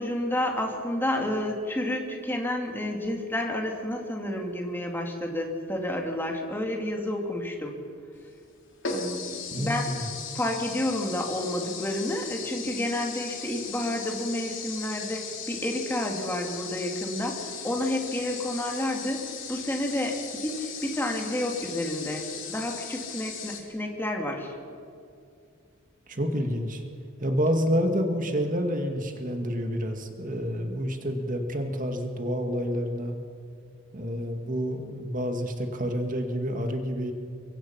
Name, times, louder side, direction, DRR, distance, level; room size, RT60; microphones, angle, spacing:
voice 1, 0.0-7.7 8.8-9.9 10.3-15.2 15.5-24.5, left 1 dB, 10° left, 1 dB, 2.9 m, -30 dB
sound 1, 8.2-8.3 8.8-23.6, left 6 dB, 65° left, 3.4 m, -38 dB
voice 2, 9.5-10.0 26.1-26.8 27.2-33.2 33.9-37.1, equal, 40° right, 4 dB, 2.0 m, -28 dB
23.5 x 23.5 x 5.8 m, 2.4 s
head